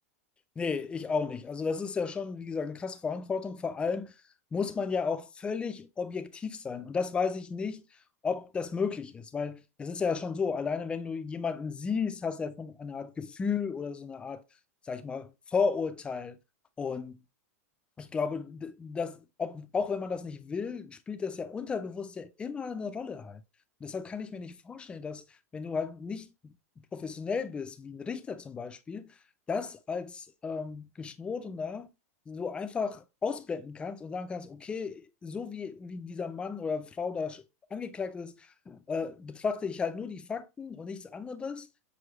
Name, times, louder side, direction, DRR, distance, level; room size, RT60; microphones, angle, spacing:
voice 1, 0.6-4.1 4.5-7.8 8.2-14.4 14.9-16.4 16.8-17.2 18.0-23.4 23.8-25.2 25.5-29.1 29.5-31.9 32.3-37.4 37.7-41.7, left 5 dB, 10° left, 0.3 m, -34 dB
6.1 x 2.3 x 2.9 m
supercardioid pair, 145°, 8 cm